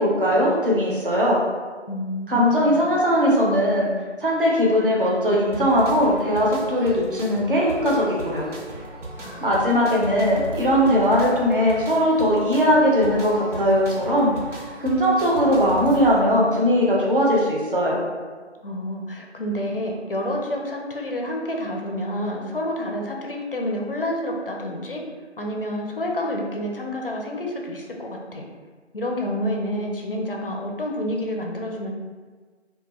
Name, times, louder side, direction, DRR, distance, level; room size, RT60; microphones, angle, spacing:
voice 1, 0.0-1.4 2.3-3.9 4.2-8.5 9.4-14.3 14.8-18.0, equal, 50° right, -3 dB, 0.6 m, -19 dB
voice 2, 1.9-2.8 9.2-9.5 18.6-25.0 25.4-28.5 28.9-31.9, left 1 dB, 50° left, 0 dB, 0.4 m, -29 dB
sound 1, 5.5-16.2, right 1 dB, 90° right, 0.7 m, -37 dB
2.3 x 2.2 x 2.9 m, 1.4 s
figure-of-eight pair, 165°, 35 cm